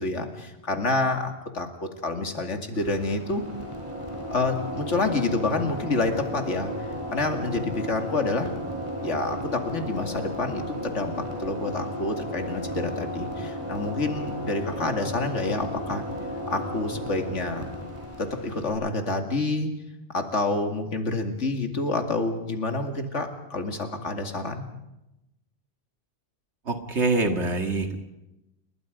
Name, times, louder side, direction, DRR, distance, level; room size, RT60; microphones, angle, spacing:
voice 1, 0.0-3.4 4.3-8.5 9.0-11.1 11.4-16.0 16.5-17.7 18.2-19.7 20.1-24.6, left 3 dB, 85° left, 5 dB, 2.6 m, -28 dB
sound 1, 2.7-18.7, equal, 25° right, 4.5 m, -34 dB
voice 2, 26.7-28.0, right 3 dB, 70° right, 5 dB, 2.2 m, -25 dB
29.5 x 21.0 x 5.1 m, 0.91 s
omnidirectional pair, 1.2 m